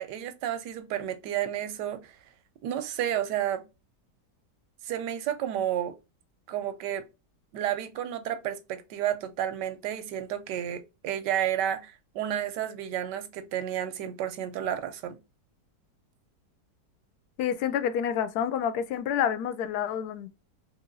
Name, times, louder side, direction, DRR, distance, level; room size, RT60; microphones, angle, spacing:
voice 1, 0.0-2.1 2.6-3.6 4.9-5.9 6.5-7.0 7.5-15.2, right 10 dB, 85° right, 1.2 m, -31 dB
voice 2, 17.4-20.3, left 8 dB, 75° left, 1.0 m, -28 dB
3.8 x 2.8 x 2.5 m
omnidirectional pair, 1.8 m